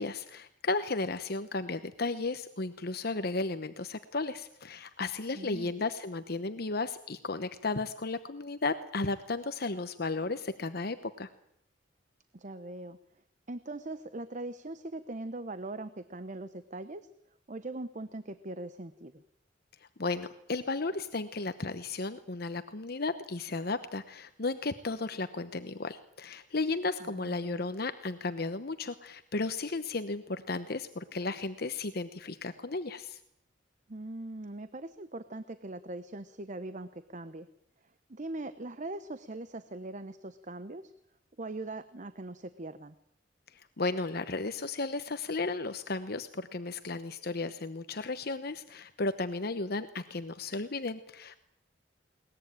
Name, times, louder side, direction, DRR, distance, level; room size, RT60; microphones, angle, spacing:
voice 1, 0.0-11.3 20.0-33.2 43.5-51.4, left 3 dB, 55° left, 10 dB, 1.0 m, -34 dB
voice 2, 5.4-5.7 12.3-13.0 13.5-17.1 17.5-19.2 27.0-27.6 33.9-37.5 38.1-40.9 41.4-42.9, right 2 dB, 40° right, 12 dB, 0.9 m, -41 dB
22.0 x 19.5 x 8.9 m, 0.72 s
head